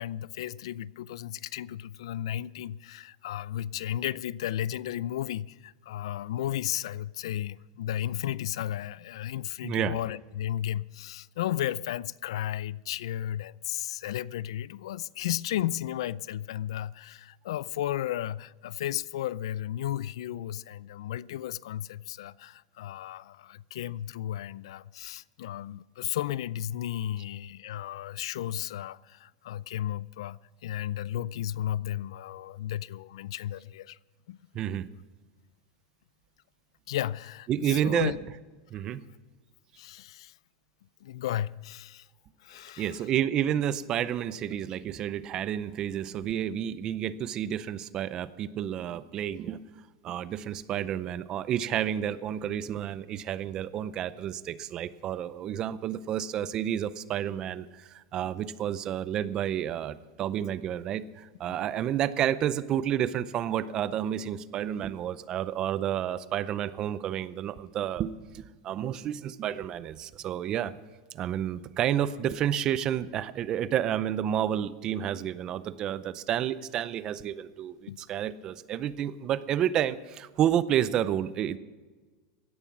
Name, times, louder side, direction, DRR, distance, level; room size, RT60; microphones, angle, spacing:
voice 1, 0.0-34.0 34.3-34.4 36.9-38.2 38.7-38.8 39.8-40.3 41.0-42.1 42.4-43.0 77.9-78.0, left 12 dB, 80° left, 0.4 m, -34 dB
voice 2, 9.6-9.9 34.5-34.9 37.5-38.2 38.7-39.1 42.8-49.6 50.0-70.7 71.1-81.6, right 10 dB, 25° right, 0.5 m, -30 dB
16.5 x 11.0 x 5.9 m
supercardioid pair, 170°, 3 cm